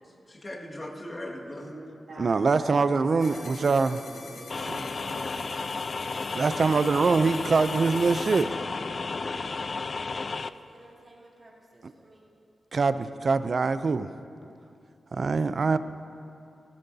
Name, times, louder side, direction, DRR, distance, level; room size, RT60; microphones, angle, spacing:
voice 1, 0.3-1.7 8.8-9.5, left 1 dB, 30° left, -2 dB, 1.8 m, -40 dB
voice 2, 1.6-6.0, right 1 dB, 75° right, -10 dB, 2.8 m, -42 dB
voice 3, 2.2-4.0 6.3-8.5 12.7-14.1 15.1-15.8, right 4 dB, 55° right, 13 dB, 0.4 m, -23 dB
sound 1, 3.2-8.4, left 4 dB, 80° left, 1.0 m, -46 dB
sound 2, 4.5-10.5, left 4 dB, 50° left, 0.3 m, -33 dB
voice 4, 7.6-8.8 10.3-12.2, right 1 dB, 35° right, -6 dB, 3.2 m, -51 dB
17.0 x 16.0 x 2.7 m, 2.6 s
wide cardioid pair, 85°, 0 cm